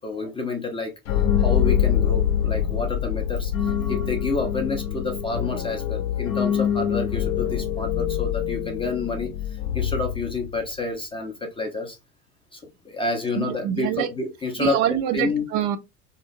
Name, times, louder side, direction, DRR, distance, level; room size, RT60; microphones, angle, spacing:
voice 1, 0.0-12.0 12.5-14.8 15.1-15.5, left 3 dB, 15° left, 0.4 m, -29 dB
sound 1, 1.0-10.7, left 9 dB, 65° left, 0.6 m, -25 dB
voice 2, 13.4-14.1 14.6-15.8, right 11 dB, 55° right, 0.4 m, -25 dB
2.8 x 2.1 x 2.5 m
hypercardioid pair, 75°, 41 cm